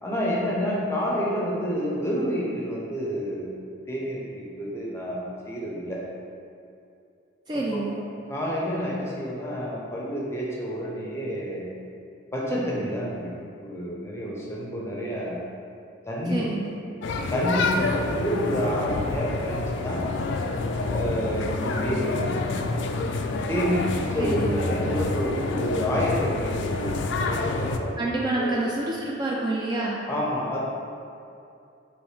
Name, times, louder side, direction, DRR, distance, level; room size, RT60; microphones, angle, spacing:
voice 1, 0.0-3.6 3.9-6.0 7.5-7.8 8.3-11.7 12.3-15.4 16.1-16.5 17.3-20.0 20.9-22.6 23.5-28.1 28.4-28.6 30.1-30.6, equal, 15° left, -5 dB, 0.6 m, -29 dB
voice 2, 7.5-8.0 16.3-16.8 24.2-24.6 28.0-30.0, right 2 dB, 25° right, -4 dB, 0.3 m, -28 dB
sound 1, 17.0-27.8, left 3 dB, 70° left, 0.3 m, -28 dB
4.7 x 3.0 x 3.2 m, 2.6 s
head